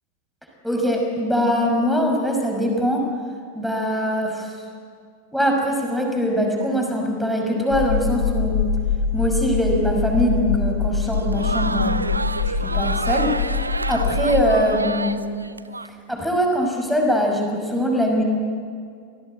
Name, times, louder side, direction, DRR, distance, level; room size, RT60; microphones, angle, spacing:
voice 1, 0.6-3.0 3.5-4.6 5.3-8.6 9.1-12.1 12.4-15.3 16.1-18.2, equal, ahead, 1 dB, 5.7 m, -22 dB
sound 1, 7.7-14.5, left 6 dB, 50° left, 7.0 m, -24 dB
Crowd, 11.0-15.9, right 3 dB, 80° right, 0.7 m, -28 dB
27.5 x 18.5 x 8.7 m, 2.2 s
figure-of-eight pair, 90°, 0 cm